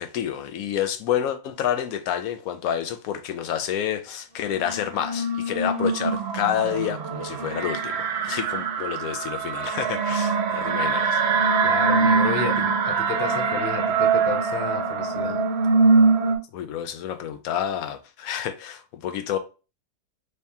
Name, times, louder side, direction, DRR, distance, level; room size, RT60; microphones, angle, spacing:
voice 1, 0.0-11.2 16.5-19.4, left 10 dB, 90° left, 1.0 m, -29 dB
sound 1, 4.5-16.4, right 4 dB, 60° right, 0.7 m, -23 dB
voice 2, 11.6-15.4, left 7 dB, 55° left, 0.7 m, -32 dB
3.2 x 2.8 x 3.4 m
omnidirectional pair, 1.4 m